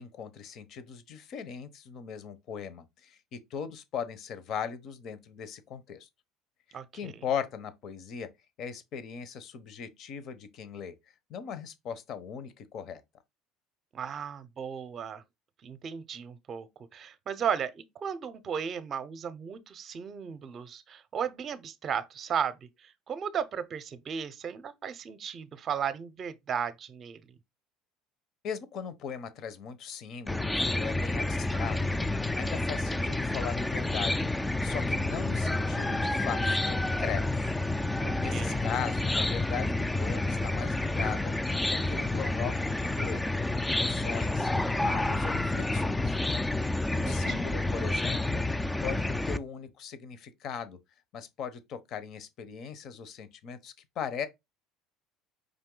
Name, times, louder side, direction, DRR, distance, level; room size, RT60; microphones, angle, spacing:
voice 1, 0.0-6.1 6.9-8.3 8.6-10.9 11.3-13.0 28.4-32.0 32.4-34.3 34.6-37.5 38.2-41.3 41.7-43.2 43.6-46.2 46.9-48.4 48.8-50.8 51.1-54.3, left 7 dB, 55° left, 0.8 m, -39 dB
voice 2, 6.7-7.2 13.9-15.2 15.6-27.3 38.0-38.6 44.4-45.4 46.9-47.5, right 7 dB, 40° right, 0.6 m, -36 dB
Chicken rooster / Cricket, 30.3-49.4, left 2 dB, 10° left, 0.3 m, -29 dB
5.1 x 2.6 x 3.8 m
supercardioid pair, 110°, 0 cm